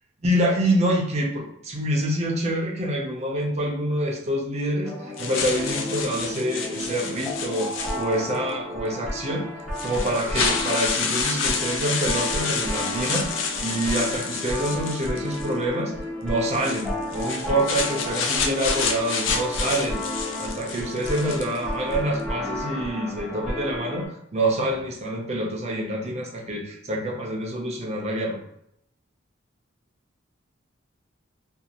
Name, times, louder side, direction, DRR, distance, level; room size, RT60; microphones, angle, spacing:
voice 1, 0.2-9.5 9.8-15.9 16.2-28.4, right 1 dB, 35° right, 0 dB, 0.6 m, -26 dB
sound 1, 4.8-24.1, left 1 dB, ahead, 0.7 m, -32 dB
sound 2, 5.2-8.4 9.2-9.3 9.7-15.5 16.5-21.6, left 5 dB, 70° left, 0.5 m, -29 dB
2.6 x 2.4 x 2.8 m, 0.74 s
head